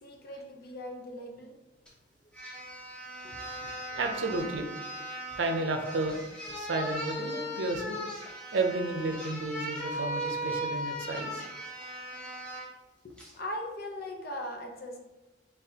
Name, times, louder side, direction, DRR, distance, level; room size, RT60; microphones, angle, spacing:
voice 1, 0.0-1.5 3.2-4.0 13.0-15.0, left 1 dB, 55° left, 2 dB, 0.7 m, -40 dB
sound 1, 1.9-2.0 2.3-12.7 13.2-13.4, equal, 5° left, 0.9 m, -38 dB
voice 2, 3.9-4.6 5.4-6.2 6.5-8.0 8.5-11.4, right 2 dB, 80° right, 4 dB, 0.6 m, -32 dB
4.2 x 3.4 x 2.8 m, 1.1 s
head